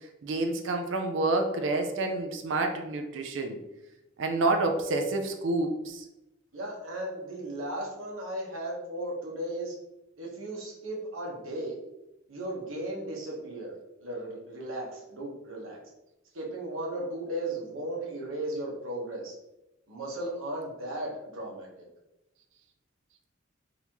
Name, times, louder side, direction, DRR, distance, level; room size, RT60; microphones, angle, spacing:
voice 1, 0.2-3.6 4.2-6.1, right 2 dB, 70° right, 4 dB, 0.4 m, -28 dB
voice 2, 6.5-9.7 10.2-11.8 12.3-13.7 14.0-15.8 16.3-19.3 19.9-21.8, right 1 dB, 85° right, -2 dB, 1.1 m, -36 dB
4.0 x 2.7 x 2.9 m, 0.93 s
head